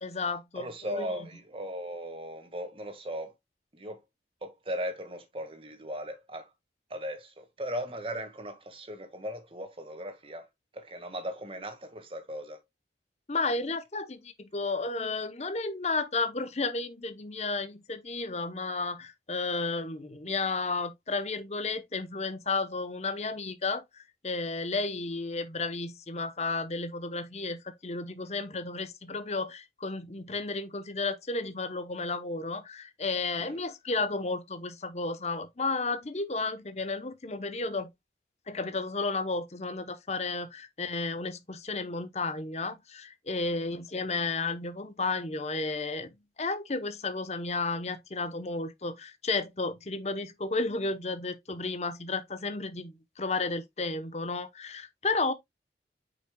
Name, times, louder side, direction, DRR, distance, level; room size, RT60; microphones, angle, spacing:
voice 1, 0.0-1.1 13.3-37.9 38.5-46.1 46.4-55.3, left 3 dB, 40° left, 0.9 m, -33 dB
voice 2, 0.6-3.3 3.7-4.0 4.4-6.5 6.9-10.5 10.7-12.6 33.4-33.6 43.5-43.7, equal, 30° right, 1.7 m, -38 dB
8.4 x 5.7 x 2.3 m
head